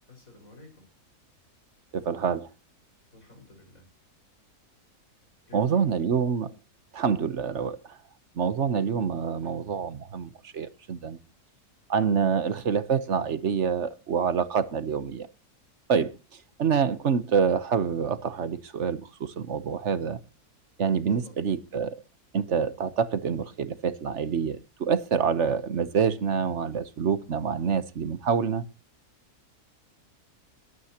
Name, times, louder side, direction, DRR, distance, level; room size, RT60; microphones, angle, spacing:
voice 1, 0.1-0.8 3.1-3.9 5.5-6.0 21.1-21.4, left 2 dB, 60° left, 5.8 m, -51 dB
voice 2, 1.9-2.5 5.5-6.5 6.9-7.8 8.4-11.2 11.9-15.3 15.9-16.1 16.6-20.2 20.8-22.0 22.3-28.6, right 6 dB, 50° right, 1.2 m, -26 dB
22.0 x 9.3 x 2.9 m
omnidirectional pair, 1.6 m